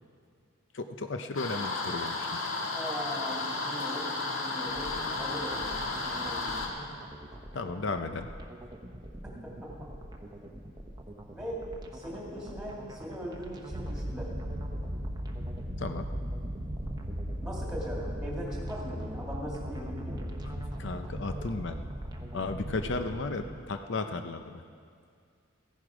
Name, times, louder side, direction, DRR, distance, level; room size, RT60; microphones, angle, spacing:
voice 1, 0.7-2.5 7.5-8.3 15.8-16.1 20.8-21.8 22.3-24.6, left 3 dB, 60° left, 7 dB, 0.6 m, -34 dB
sound 1, 1.3-6.7, left 3 dB, 75° left, 1.7 m, -33 dB
voice 2, 2.7-5.7 6.0-6.5 9.2-9.9 11.3-11.6 11.9-14.3 17.4-20.3, equal, 5° right, -4 dB, 2.5 m, -40 dB
sound 2, 4.7-23.6, right 1 dB, 20° right, 0.9 m, -45 dB
sound 3, 13.7-23.8, equal, 40° right, 1.1 m, -37 dB
15.5 x 11.0 x 5.0 m, 2.2 s
head